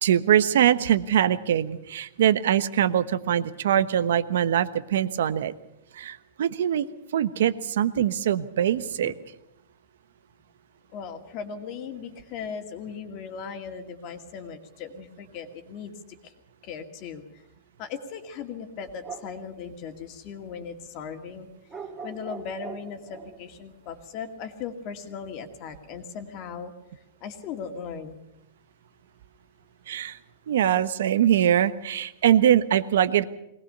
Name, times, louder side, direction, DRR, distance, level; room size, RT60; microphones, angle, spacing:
voice 1, 0.0-5.5 6.0-6.9 7.1-9.1 29.9-30.2 30.5-33.2, right 10 dB, 80° right, 13 dB, 1.2 m, -22 dB
voice 2, 10.9-15.9 16.2-16.3 16.6-17.2 17.8-21.5 22.0-26.7 27.2-28.2, left 6 dB, 35° left, 6 dB, 2.2 m, -38 dB
sound 1, 18.8-19.4 21.7-23.4, right 5 dB, 15° right, 2.7 m, -41 dB
22.0 x 19.0 x 6.8 m, 0.85 s
supercardioid pair, 165°, 0 cm